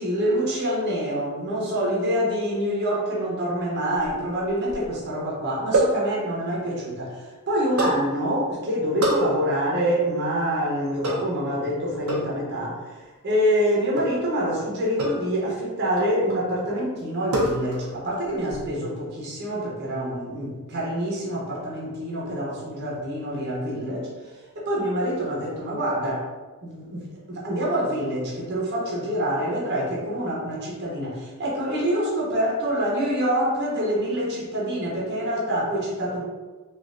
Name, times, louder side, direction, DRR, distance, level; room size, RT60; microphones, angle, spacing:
voice 1, 0.0-26.3 26.6-36.3, equal, 50° right, -4 dB, 0.7 m, -26 dB
sound 1, 3.9-4.9 5.7-6.0 7.8-8.1 9.0-9.3 11.0-11.4 12.1-12.4 14.0-14.2 15.0-15.3 16.0-16.5 17.3-18.0 18.2-18.6, right 1 dB, 85° right, 0.6 m, -26 dB
3.1 x 2.4 x 2.5 m, 1.3 s
head